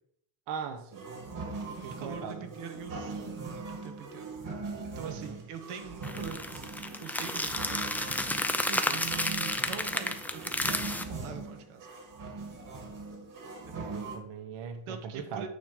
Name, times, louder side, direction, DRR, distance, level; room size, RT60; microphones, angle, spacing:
voice 1, 0.5-1.4 1.7-2.5 5.0-5.4 8.7-9.1 13.7-15.5, right 6 dB, 55° right, 6 dB, 1.0 m, -40 dB
sound 1, 0.9-14.2, right 3 dB, 40° right, 2.3 m, -41 dB
voice 2, 1.4-4.3 4.9-8.0 8.5-11.9 13.7-13.8 14.9-15.5, right 7 dB, 85° right, 6 dB, 1.5 m, -43 dB
sound 2, 6.0-11.0, left 1 dB, 5° left, 0.4 m, -32 dB
9.3 x 3.6 x 6.6 m, 0.71 s
cardioid pair, 140°, 49 cm